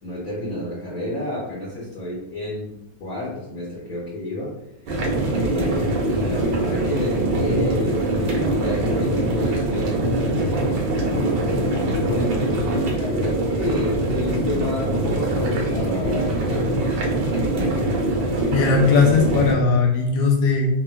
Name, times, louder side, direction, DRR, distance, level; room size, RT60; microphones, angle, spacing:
voice 1, 0.0-2.7 3.0-4.5 5.1-10.5 10.9-16.8 17.2-17.9, left 1 dB, 60° left, -6 dB, 1.1 m, -30 dB
sound 1, 4.9-19.5, right 1 dB, 85° right, 1.3 m, -23 dB
voice 2, 18.5-20.7, left 4 dB, 90° left, 1 dB, 1.3 m, -18 dB
3.2 x 2.2 x 2.2 m, 0.90 s
omnidirectional pair, 1.9 m